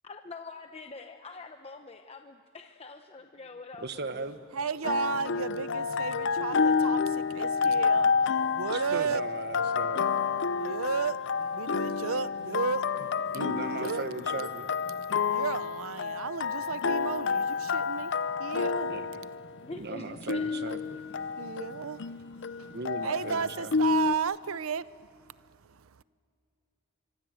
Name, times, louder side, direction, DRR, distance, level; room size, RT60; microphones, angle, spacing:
voice 1, 0.0-4.3 19.6-20.8, left 3 dB, 30° left, 0.9 m, -45 dB
voice 2, 3.8-4.4 8.7-10.0 13.3-14.7 18.9-19.1 19.7-20.8 22.7-23.7, right 3 dB, 50° right, 1.3 m, -37 dB
voice 3, 4.5-8.3 8.5-9.2 10.6-11.2 11.5-12.9 13.2-14.5 15.3-18.9 21.4-22.2 22.6-22.7 23.0-25.2 25.6-26.0, right 6 dB, 80° right, 0.7 m, -34 dB
sound 1, 4.8-24.1, left 5 dB, 60° left, 0.7 m, -29 dB
24.5 x 24.5 x 7.9 m
head